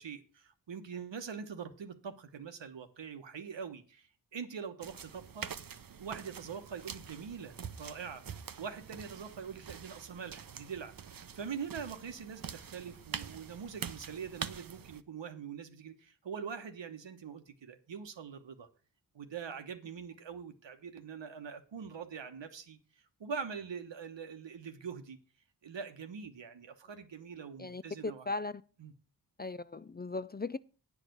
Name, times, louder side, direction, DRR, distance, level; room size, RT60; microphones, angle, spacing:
voice 1, 0.0-5.5 6.0-10.9 11.3-18.7 19.1-22.8 23.2-25.2 25.6-28.3 28.8-28.9, right 6 dB, 85° right, 1.2 m, -43 dB
sound 1, 4.8-15.0, right 7 dB, 55° right, 0.7 m, -45 dB
voice 2, 27.6-28.6 29.4-30.6, left 3 dB, 25° left, 0.4 m, -38 dB
9.8 x 4.9 x 7.8 m
wide cardioid pair, 70°, 43 cm